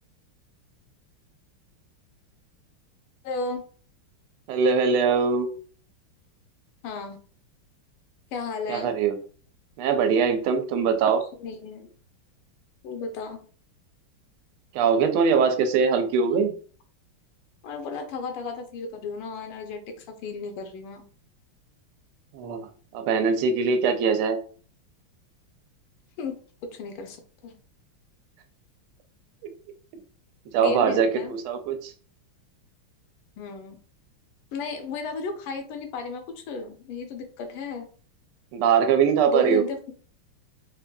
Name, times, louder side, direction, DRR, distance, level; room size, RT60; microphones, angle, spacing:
voice 1, 3.2-3.6 6.8-7.2 8.3-9.0 11.4-11.9 12.8-13.4 17.6-21.1 26.2-26.4 26.7-27.2 27.4-27.6 30.6-31.3 33.4-33.8 34.5-37.9 39.3-39.9, left 4 dB, 90° left, 6 dB, 1.6 m, -34 dB
voice 2, 4.5-5.5 8.7-9.1 9.8-11.2 14.7-16.5 22.3-22.6 22.9-24.4 29.4-29.5 30.5-31.9 38.5-39.6, right 6 dB, 85° right, 7 dB, 1.5 m, -22 dB
3.9 x 2.6 x 2.2 m, 0.42 s
omnidirectional pair, 2.4 m